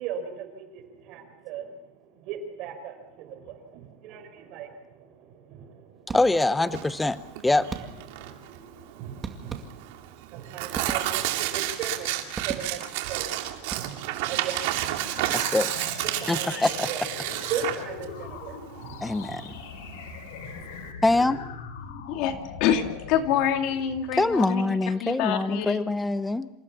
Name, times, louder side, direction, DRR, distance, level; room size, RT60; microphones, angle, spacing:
voice 1, 0.0-6.2 6.5-7.5 7.8-15.7 16.0-21.0, right 7 dB, 50° right, 6 dB, 5.5 m, -39 dB
voice 2, 6.1-7.2 7.4-7.7 15.3-15.7 16.3-16.9 19.0-19.4 21.0-21.4 24.2-26.5, left 2 dB, 5° left, 13 dB, 0.7 m, -24 dB
sound 1, 6.1-6.6 7.7-8.3 9.2-10.1 10.7-11.5 12.3-13.1 13.6-14.3, right 5 dB, 20° right, 2.1 m, -38 dB
Tearing, 6.6-20.9, right 14 dB, 70° right, 2.7 m, -31 dB
sound 2, 15.0-24.5, left 6 dB, 85° left, 4.6 m, -41 dB
voice 3, 22.6-24.6 25.0-25.8, left 9 dB, 55° left, 5 dB, 2.6 m, -26 dB
27.5 x 16.0 x 7.3 m, 0.92 s
supercardioid pair, 150°, 0 cm